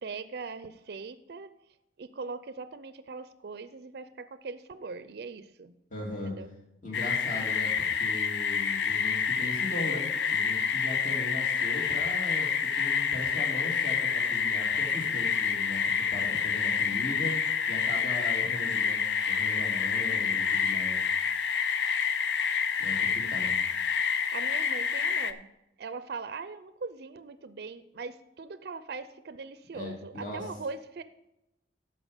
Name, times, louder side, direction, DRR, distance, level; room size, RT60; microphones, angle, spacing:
voice 1, 0.0-1.5 2.0-5.7 6.2-6.5 24.3-25.5 25.8-31.0, right 4 dB, 60° right, 13 dB, 0.4 m, -40 dB
voice 2, 5.9-6.3 6.8-17.3 17.7-19.0 19.3-21.1 22.8-23.6 29.7-30.5, left 1 dB, 50° left, -2 dB, 2.7 m, -38 dB
sound 1, 6.9-25.3, left 6 dB, 75° left, 0.6 m, -28 dB
10.5 x 6.7 x 5.0 m, 0.88 s
head